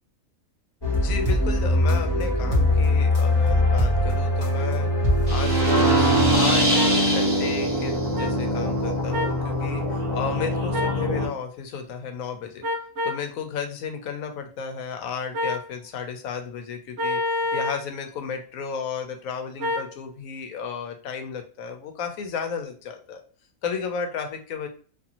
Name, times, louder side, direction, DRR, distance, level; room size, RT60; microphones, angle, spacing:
sound 1, 0.8-6.9, left 1 dB, 20° left, 0.9 m, -22 dB
voice 1, 1.0-12.6 13.0-23.2 23.6-24.7, left 6 dB, 80° left, 5 dB, 1.0 m, -33 dB
sound 2, 5.3-11.3, right 1 dB, 25° right, 1.0 m, -23 dB
sound 3, 6.7-6.9 8.2-8.3 9.1-9.4 10.7-11.0 12.6-13.2 15.3-15.7 17.0-17.8 19.6-19.9, left 2 dB, 65° right, 0.7 m, -27 dB
2.6 x 2.5 x 2.8 m, 0.42 s
omnidirectional pair, 1.4 m